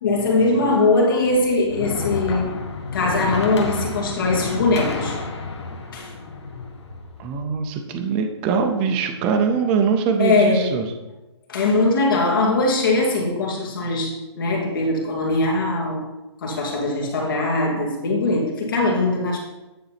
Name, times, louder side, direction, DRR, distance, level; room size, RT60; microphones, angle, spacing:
voice 1, 0.0-2.6 2.9-5.2 5.9-6.1 10.2-10.8 11.5-16.1 16.4-19.4, left 2 dB, 50° left, -2 dB, 2.4 m, -21 dB
sound 1, 1.3-7.4, left 3 dB, 70° left, 1.5 m, -30 dB
voice 2, 7.2-10.8, right 6 dB, 10° right, 4 dB, 0.3 m, -22 dB
9.8 x 3.8 x 5.8 m, 1.0 s
hypercardioid pair, 170°, 15 cm